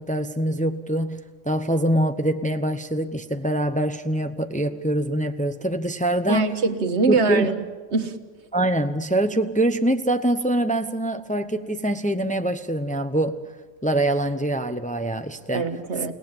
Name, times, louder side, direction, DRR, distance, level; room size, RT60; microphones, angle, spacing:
voice 1, 0.0-6.5 7.1-7.5 8.5-13.4 13.8-15.7, right 1 dB, 10° left, 0.7 m, -24 dB
voice 2, 6.3-7.5 7.9-8.2 15.5-16.1, right 4 dB, 65° right, 1.6 m, -23 dB
30.0 x 18.0 x 7.3 m
omnidirectional pair, 1.2 m